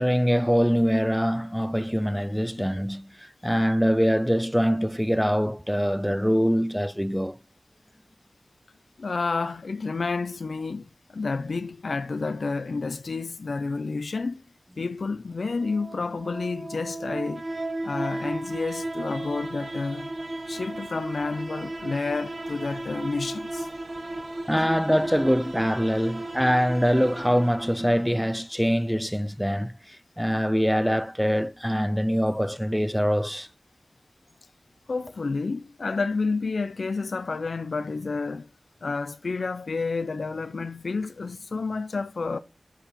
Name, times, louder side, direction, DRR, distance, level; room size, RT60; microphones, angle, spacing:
voice 1, 0.0-7.4 24.5-33.5, equal, ahead, 0.4 m, -24 dB
voice 2, 9.0-14.4 14.8-17.4 17.8-20.1 20.5-23.7 34.9-38.5 38.8-42.4, left 4 dB, 75° left, 0.6 m, -30 dB
sound 1, 15.4-28.4, right 1 dB, 40° right, 1.3 m, -35 dB
8.9 x 4.8 x 5.4 m
wide cardioid pair, 80°, 0 cm